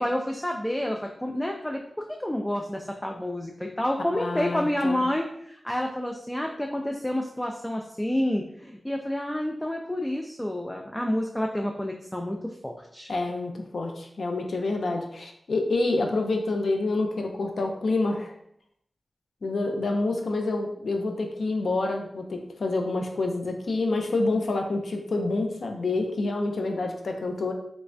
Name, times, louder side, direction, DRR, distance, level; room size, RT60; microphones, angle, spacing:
voice 1, 0.0-1.8 2.1-13.1, left 1 dB, 10° left, 1 dB, 0.3 m, -29 dB
voice 2, 4.1-5.0 13.1-18.3 19.4-27.5, left 2 dB, 80° left, 3 dB, 0.4 m, -27 dB
3.2 x 3.1 x 2.5 m, 0.71 s
wide cardioid pair, 75°, 0 cm